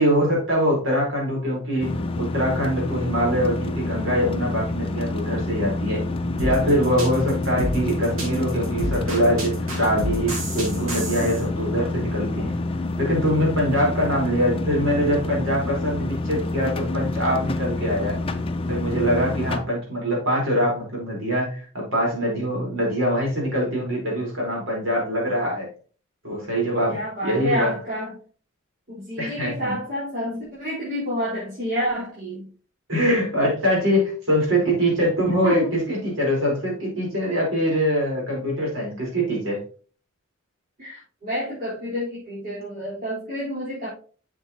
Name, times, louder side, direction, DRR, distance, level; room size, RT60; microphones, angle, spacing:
voice 1, 0.0-1.9 2.1-6.0 6.4-12.5 13.0-18.2 18.7-25.7 26.2-27.7 29.2-29.7 32.9-39.6, equal, 65° right, -2 dB, 4.4 m, -23 dB
sound 1, 1.8-19.6, left 2 dB, 25° left, 0.6 m, -28 dB
sound 2, 6.4-11.4, equal, 85° right, 3.4 m, -29 dB
voice 2, 26.9-28.2 28.9-32.5 35.4-35.8 40.8-43.9, equal, 45° right, -11 dB, 4.4 m, -29 dB
7.8 x 7.4 x 3.0 m, 0.39 s
head